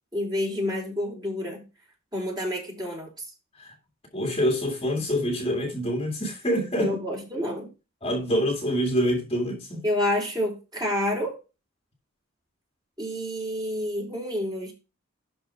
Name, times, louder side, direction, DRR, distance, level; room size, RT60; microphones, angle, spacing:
voice 1, 0.1-1.7 2.1-3.2 6.8-7.7 9.8-11.4 13.0-14.7, left 1 dB, 20° right, 4.1 m, -29 dB
voice 2, 4.1-7.0 8.0-9.8, equal, 30° left, 2.1 m, -26 dB
12.0 x 4.4 x 4.5 m
head